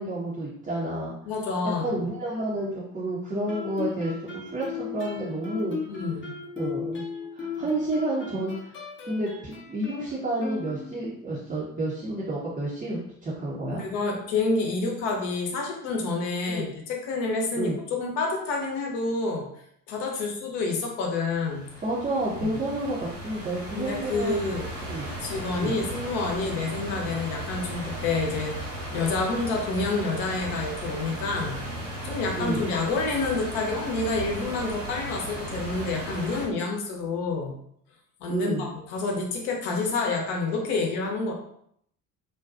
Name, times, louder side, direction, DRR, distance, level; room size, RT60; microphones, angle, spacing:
voice 1, 0.0-1.1 1.8-5.8 6.6-7.0 7.3-8.8 9.0-13.8 16.5-16.7 17.6-17.8 21.8-24.4 24.8-25.1 25.5-25.8 32.4-32.6 38.3-38.7, right 2 dB, 20° right, -7 dB, 0.6 m, -30 dB
voice 2, 1.3-2.0 5.9-6.3 13.7-19.5 19.9-21.7 22.4-22.6 23.8-24.7 25.2-31.6 32.0-37.6 38.2-41.3, left 3 dB, 60° left, 1 dB, 0.8 m, -28 dB
Guitar, 3.5-11.2, left 5 dB, 25° left, 0.7 m, -36 dB
sound 1, 21.3-36.5, right 1 dB, 80° right, 0.9 m, -36 dB
2.5 x 2.2 x 2.4 m, 0.70 s
figure-of-eight pair, 55°, 47 cm